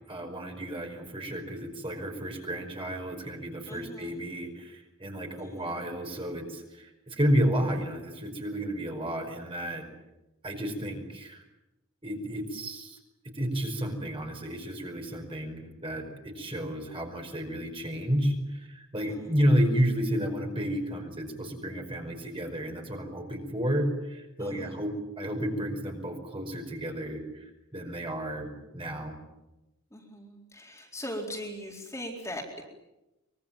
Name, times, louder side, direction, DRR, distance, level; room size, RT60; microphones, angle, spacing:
voice 1, 0.1-9.9 10.4-11.4 12.0-13.0 13.3-29.2, equal, 25° right, 3 dB, 5.2 m, -31 dB
voice 2, 3.7-4.2 5.3-5.8 18.9-19.3 24.4-24.9 29.9-32.6, equal, 15° left, 0 dB, 4.2 m, -40 dB
24.5 x 23.5 x 9.1 m, 0.96 s
head